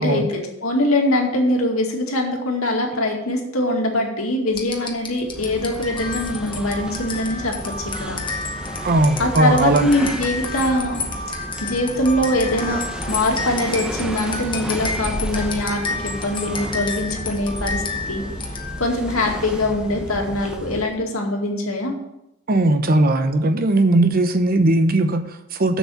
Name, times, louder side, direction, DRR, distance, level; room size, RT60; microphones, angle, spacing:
voice 1, 0.0-8.2 9.2-11.0 11.3-12.8 13.1-18.2 18.8-21.9, left 1 dB, 80° left, 1 dB, 2.2 m, -23 dB
sound 1, 4.5-19.0, left 3 dB, 25° left, 1.2 m, -31 dB
sound 2, 5.2-21.0, equal, 5° right, 0.9 m, -33 dB
voice 2, 8.8-9.9 22.5-25.8, right 2 dB, 45° right, 9 dB, 0.8 m, -18 dB
7.3 x 7.1 x 7.1 m, 0.86 s
head